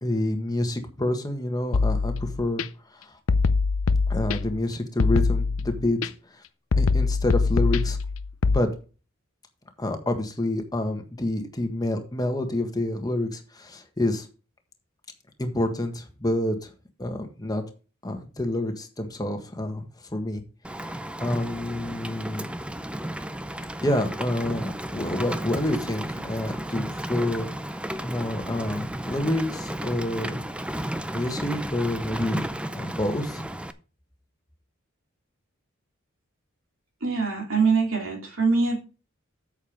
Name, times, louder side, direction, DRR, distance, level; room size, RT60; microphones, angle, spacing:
voice 1, 0.0-2.6 2.9-3.2 4.1-6.0 6.3-6.4 6.8-8.0 8.5-8.7 9.8-14.3 15.4-16.7 17.0-17.6 18.0-20.4 21.2-22.5 23.8-27.5 28.0-30.4 31.1-33.5, left 1 dB, 20° left, 5 dB, 1.6 m, -28 dB
sound 1, 1.7-2.6 3.3-4.6 5.0-6.1 6.7-8.6, left 4 dB, 80° left, 0.6 m, -23 dB
Rain, 20.6-33.7, right 1 dB, 5° right, 0.5 m, -33 dB
voice 2, 37.0-38.8, right 4 dB, 70° right, 0 dB, 2.9 m, -23 dB
8.5 x 6.7 x 5.2 m, 0.34 s
head